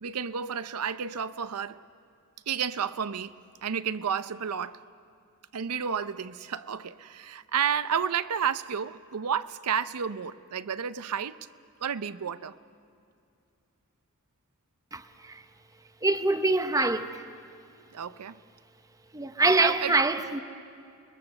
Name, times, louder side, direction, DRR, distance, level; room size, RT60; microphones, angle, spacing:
voice 1, 0.0-1.8 2.5-4.8 5.5-11.4 11.8-12.6 17.9-18.4 19.4-19.9, right 7 dB, 85° right, 0.6 m, -31 dB
voice 2, 14.9-15.4 16.0-17.2 19.1-20.4, right 2 dB, 15° right, 0.8 m, -25 dB
30.0 x 21.0 x 6.8 m
head